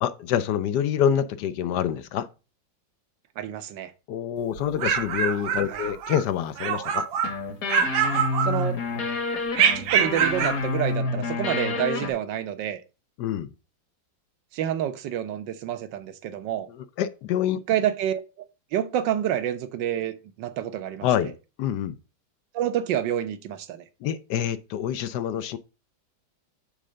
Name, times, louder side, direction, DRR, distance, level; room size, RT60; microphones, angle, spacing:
voice 1, 0.0-2.3 4.1-7.1 13.2-13.5 16.7-17.6 21.0-21.3 21.6-22.0 24.0-25.6, left 9 dB, 70° left, 1.1 m, -26 dB
voice 2, 3.4-3.9 5.7-5.8 8.4-8.8 9.7-12.8 14.5-16.7 17.7-18.2 18.7-21.3 22.5-23.8, right 10 dB, 75° right, 1.5 m, -28 dB
sound 1, 4.6-6.2 6.6-7.4 7.7-8.9 9.5-10.6, right 7 dB, 90° right, 1.6 m, -25 dB
sound 2, 7.2-12.1, left 3 dB, 50° left, 1.6 m, -28 dB
6.7 x 3.7 x 6.3 m
omnidirectional pair, 2.0 m